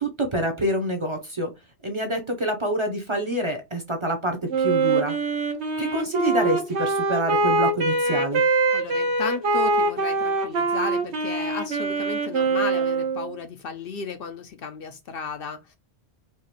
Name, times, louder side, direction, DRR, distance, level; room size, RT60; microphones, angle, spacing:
voice 1, 0.0-1.5 1.8-5.2 5.8-8.4, right 1 dB, 30° right, 0.7 m, -26 dB
Wind instrument woodwind instrument, 4.5-13.3, right 3 dB, 75° right, 1.2 m, -24 dB
voice 2, 8.7-15.8, left 6 dB, 65° left, 0.7 m, -34 dB
4.6 x 2.5 x 2.9 m
omnidirectional pair, 1.1 m